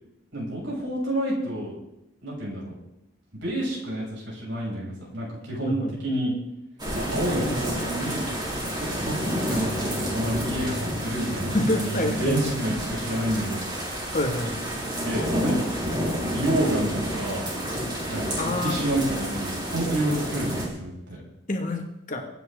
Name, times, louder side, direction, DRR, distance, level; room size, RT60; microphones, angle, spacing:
voice 1, 0.3-1.7 2.2-2.8 3.3-6.3 6.9-8.3 8.7-13.6 15.0-15.6 16.3-17.5 18.1-21.2, right 1 dB, 65° right, -4 dB, 6.8 m, -29 dB
voice 2, 5.6-5.9 7.4-7.6 11.5-12.6 14.1-14.6 18.4-18.8 21.5-22.3, left 1 dB, 40° left, 3 dB, 2.1 m, -28 dB
sound 1, 6.8-20.7, equal, 20° right, 3.9 m, -30 dB
24.0 x 9.6 x 3.9 m, 0.87 s
head